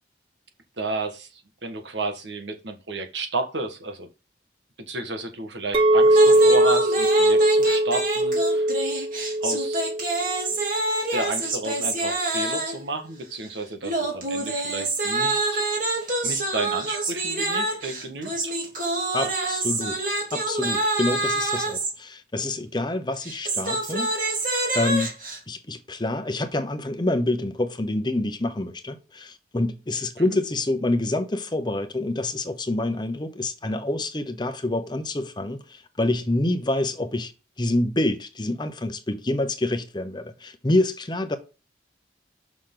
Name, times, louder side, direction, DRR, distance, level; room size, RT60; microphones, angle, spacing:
voice 1, 0.8-1.3 1.6-4.1 4.9-8.7 9.4-9.8 11.1-15.6 16.2-18.5, right 2 dB, 80° right, 1.6 m, -32 dB
Chink clink, 5.7-11.0, right 1 dB, 30° right, 0.6 m, -20 dB
sound 1, 6.1-12.9 13.8-21.9 23.1-25.4, right 2 dB, 50° right, 2.6 m, -27 dB
voice 2, 19.1-24.1 24.7-25.1 25.5-37.3 37.6-41.4, left 2 dB, 25° left, 0.9 m, -27 dB
6.7 x 6.1 x 3.9 m
head